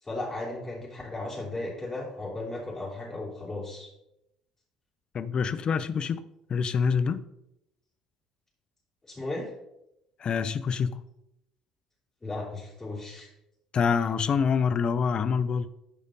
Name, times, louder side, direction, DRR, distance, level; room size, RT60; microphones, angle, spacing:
voice 1, 0.0-3.9 9.0-9.5 12.2-13.3, left 2 dB, 20° left, 3.6 m, -35 dB
voice 2, 5.1-7.2 10.2-11.0 13.7-15.7, left 6 dB, 40° left, 0.5 m, -26 dB
13.0 x 5.1 x 3.9 m
figure-of-eight pair, 55°, 2 cm